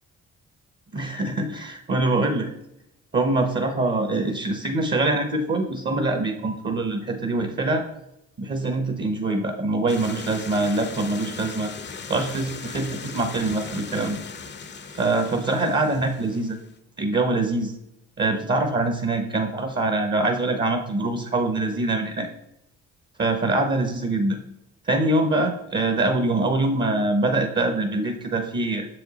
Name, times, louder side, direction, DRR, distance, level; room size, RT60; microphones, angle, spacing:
voice 1, 0.9-2.5 3.1-7.8 8.4-11.7 12.1-14.2 14.9-16.6 17.0-17.7 18.2-22.3 23.2-24.4 24.8-28.9, right 2 dB, 35° right, 5 dB, 0.9 m, -24 dB
sound 1, 9.9-16.8, left 5 dB, 35° left, 0.7 m, -38 dB
6.5 x 5.2 x 4.0 m, 0.81 s
cardioid pair, 90°, 30 cm